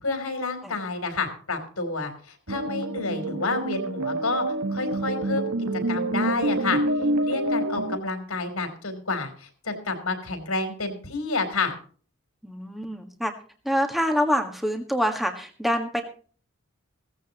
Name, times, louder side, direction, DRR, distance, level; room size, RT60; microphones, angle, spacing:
voice 1, 0.0-4.4 4.7-5.5 5.9-6.8 7.2-11.7, left 3 dB, 80° left, 5 dB, 3.8 m, -29 dB
sound 1, 2.5-8.0, right 1 dB, 85° right, 1.7 m, -27 dB
voice 2, 12.4-13.3 13.6-16.0, equal, ahead, 3 dB, 1.6 m, -26 dB
17.5 x 15.0 x 3.0 m, 0.41 s
head